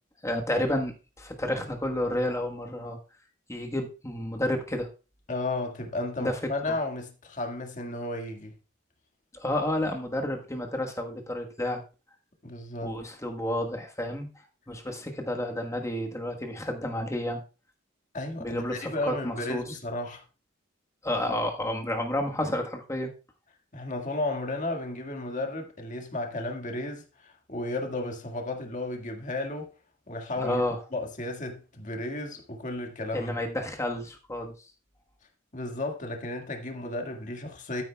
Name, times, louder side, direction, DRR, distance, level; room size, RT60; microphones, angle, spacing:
voice 1, 0.2-3.0 3.5-4.9 6.2-6.4 6.7-6.8 9.3-11.8 12.8-14.3 14.7-17.4 18.4-19.8 21.0-23.1 30.4-30.8 33.1-34.5, left 1 dB, 15° left, 1.3 m, -30 dB
voice 2, 5.3-8.5 12.4-13.0 18.1-20.2 23.7-29.7 30.1-30.6 30.9-33.4 35.5-37.8, left 2 dB, 40° left, 1.8 m, -33 dB
12.0 x 10.0 x 2.3 m
head